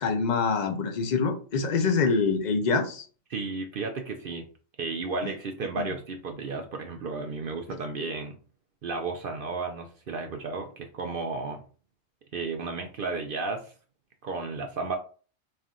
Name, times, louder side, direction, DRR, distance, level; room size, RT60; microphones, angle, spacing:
voice 1, 0.0-3.0 5.8-5.9, left 4 dB, 45° left, 5 dB, 0.6 m, -25 dB
voice 2, 3.3-4.5 4.8-8.4 8.8-11.6 12.3-13.7 14.2-15.0, right 3 dB, 65° right, 4 dB, 0.5 m, -33 dB
4.3 x 2.6 x 3.7 m, 0.40 s
omnidirectional pair, 1.5 m